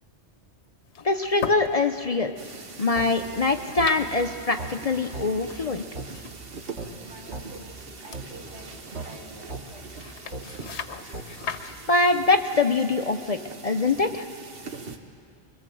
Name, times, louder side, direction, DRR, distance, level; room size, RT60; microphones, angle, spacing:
sound 1, 0.8-11.8, left 6 dB, 75° left, 1.2 m, -41 dB
voice 1, 1.0-2.3 2.8-5.8 11.9-14.3, left 3 dB, 40° left, 6 dB, 0.7 m, -23 dB
sound 2, 2.4-15.0, right 4 dB, 60° right, 1.3 m, -43 dB
sound 3, 3.0-3.1 3.8-3.9 4.6-4.7 5.1-5.3 6.0-6.1 6.8-6.9 7.3-7.5 8.1-8.3 9.0-9.1 9.5-9.6 10.3-10.5 11.1-11.3, right 3 dB, 85° right, 2.7 m, -36 dB
voice 2, 5.8-6.2 7.0-8.7 9.0-10.0, right 1 dB, 35° right, -5 dB, 2.2 m, -48 dB
24.5 x 21.5 x 7.7 m, 2.3 s
omnidirectional pair, 1.1 m